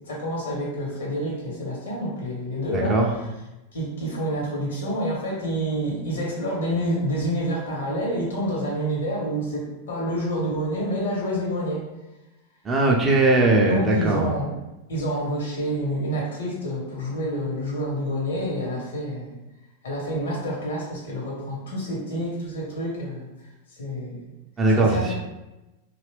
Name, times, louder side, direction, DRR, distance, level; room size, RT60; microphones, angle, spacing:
voice 1, 0.1-3.3 3.7-11.9 13.7-14.5 14.9-19.3 19.8-23.3 23.7-24.3 24.7-25.1, equal, 65° left, -3 dB, 1.1 m, -28 dB
voice 2, 2.7-3.1 12.6-14.3 24.6-25.1, right 2 dB, 20° right, -1 dB, 0.5 m, -19 dB
2.8 x 2.3 x 3.2 m, 0.99 s
figure-of-eight pair, 90°, 0 cm